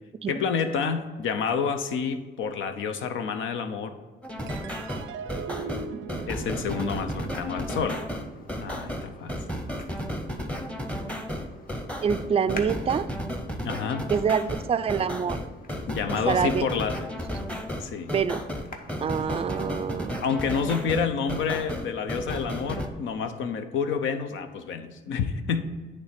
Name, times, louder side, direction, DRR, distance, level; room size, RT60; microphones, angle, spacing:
voice 1, 0.3-4.0 6.3-8.0 8.6-9.4 13.6-14.1 15.9-17.1 17.8-18.1 20.2-25.6, left 6 dB, 80° left, 8 dB, 0.7 m, -29 dB
sound 1, 4.2-22.9, equal, 5° left, 0.9 m, -33 dB
sound 2, 4.5-11.1, right 5 dB, 80° right, 0.5 m, -41 dB
sound 3, 7.4-20.6, left 3 dB, 45° left, 1.0 m, -48 dB
voice 2, 12.0-13.1 14.1-15.4 16.3-16.7 18.1-18.4 19.0-20.2, right 7 dB, 30° right, 12 dB, 0.4 m, -26 dB
8.8 x 3.4 x 5.8 m, 1.3 s
cardioid pair, 90°, 20 cm